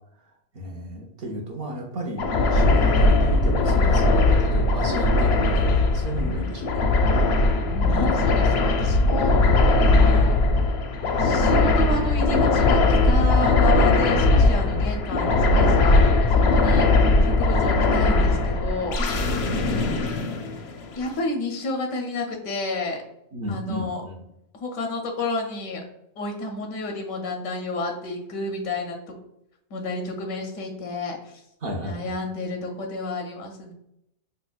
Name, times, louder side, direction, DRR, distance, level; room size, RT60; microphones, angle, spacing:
voice 1, 0.5-6.8 19.2-19.9 23.3-24.2 31.6-32.1, right 1 dB, 60° right, 1 dB, 0.7 m, -33 dB
sound 1, 2.2-21.0, left 2 dB, 65° left, 0.7 m, -19 dB
voice 2, 7.6-10.3 11.2-19.0 20.9-23.0 23.5-24.0 24.5-25.8 26.2-29.0 29.7-31.4 31.8-33.7, left 2 dB, 85° left, 2 dB, 1.0 m, -30 dB
5.1 x 2.1 x 2.3 m, 0.81 s
omnidirectional pair, 1.4 m